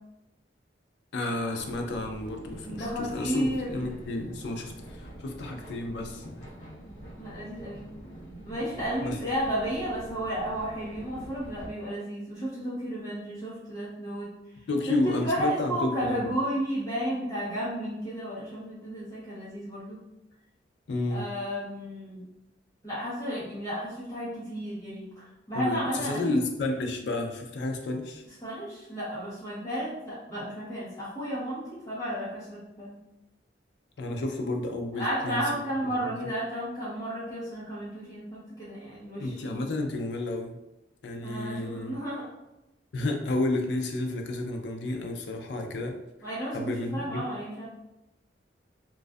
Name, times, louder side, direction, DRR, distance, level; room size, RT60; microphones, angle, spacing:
voice 1, 1.1-6.5 9.0-9.2 14.7-16.3 20.9-21.2 25.5-28.2 34.0-35.6 36.0-36.1 39.2-40.6 41.0-42.0 42.9-45.9 46.5-47.3, left 2 dB, 70° left, 3 dB, 0.4 m, -31 dB
sound 1, 1.6-11.7, right 1 dB, 45° left, 0.7 m, -45 dB
voice 2, 2.6-3.7 7.2-7.8 8.4-14.3 15.0-20.0 21.1-22.3 22.8-25.1 25.5-26.4 28.4-32.9 35.0-39.6 41.2-42.3 46.2-47.7, equal, 20° left, -9 dB, 0.8 m, -33 dB
2.5 x 2.3 x 2.2 m, 0.91 s
head